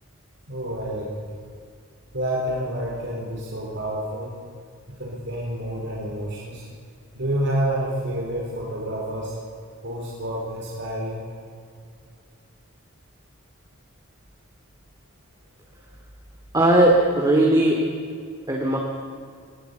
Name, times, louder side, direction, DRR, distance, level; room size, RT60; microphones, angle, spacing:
voice 1, 0.5-1.3 2.1-4.3 5.0-6.6 7.1-9.3 9.8-11.3, right 1 dB, 60° right, -4 dB, 4.4 m, -28 dB
voice 2, 16.5-17.8 18.5-18.8, right 1 dB, 20° right, -1 dB, 2.5 m, -18 dB
21.0 x 18.5 x 8.3 m, 2.3 s
head